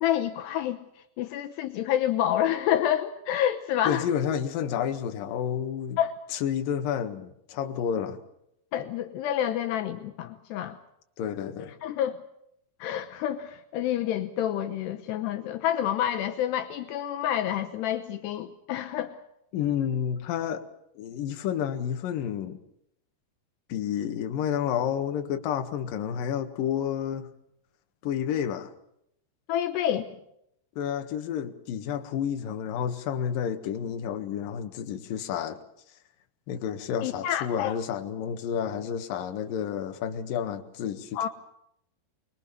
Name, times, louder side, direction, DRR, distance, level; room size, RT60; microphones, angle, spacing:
voice 1, 0.0-4.1 6.0-6.2 8.7-10.8 11.8-12.2 12.8-19.2 29.5-30.1 37.0-37.7 41.1-41.3, left 11 dB, 75° left, 3.0 m, -28 dB
voice 2, 3.8-6.0 6.3-8.2 11.2-11.7 19.5-20.7 21.0-22.6 23.7-27.3 28.0-28.7 30.8-35.6 36.5-41.3, left 8 dB, 60° left, 2.9 m, -30 dB
26.0 x 21.5 x 7.0 m
omnidirectional pair, 5.0 m